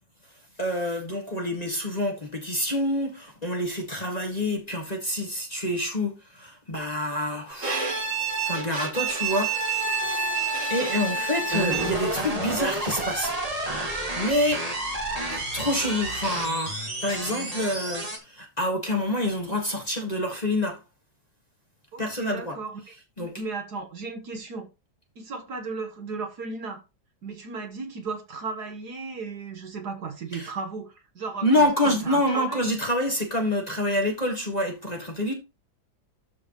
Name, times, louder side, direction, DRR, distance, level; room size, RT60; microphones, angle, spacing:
voice 1, 0.6-7.8 8.4-10.3 10.7-13.3 14.1-14.6 15.3-20.8 22.0-22.6 23.2-23.3 30.3-30.5 31.4-35.3, left 1 dB, 20° left, 1.6 m, -27 dB
Bowed string instrument, 7.6-12.2, right 4 dB, 80° right, 4.8 m, -28 dB
sound 1, 9.0-18.2, right 1 dB, 20° right, 1.8 m, -32 dB
voice 2, 21.9-24.7 25.2-26.8 27.2-32.7, right 4 dB, 55° right, 1.6 m, -35 dB
12.5 x 5.0 x 3.0 m
omnidirectional pair, 2.2 m